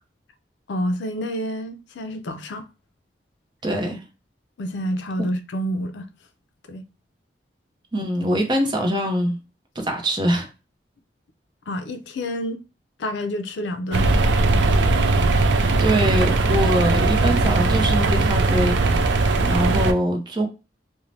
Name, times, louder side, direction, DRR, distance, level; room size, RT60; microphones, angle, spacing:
voice 1, 0.7-2.7 4.6-6.1 6.7-6.8 11.7-12.6 13.0-14.1, equal, 80° left, 0.4 m, -28 dB
voice 2, 3.6-4.0 7.9-9.4 9.8-10.5 15.8-18.8 19.4-20.5, equal, 25° right, 0.6 m, -23 dB
sound 1, 13.9-19.9, right 2 dB, 75° right, 0.4 m, -19 dB
2.6 x 2.1 x 3.1 m
head